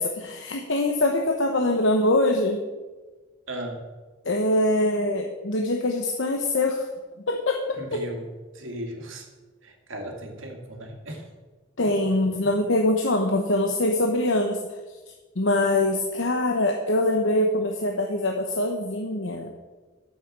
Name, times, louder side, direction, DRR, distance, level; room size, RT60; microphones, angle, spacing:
voice 1, 0.0-2.6 4.2-6.9 7.3-7.8 11.8-14.6 15.4-19.5, left 1 dB, 70° left, 2 dB, 1.0 m, -23 dB
voice 2, 3.5-3.9 7.7-8.3 8.5-9.3 9.6-11.3, right 1 dB, 80° right, 3 dB, 2.1 m, -36 dB
9.6 x 7.9 x 7.3 m, 1.3 s
head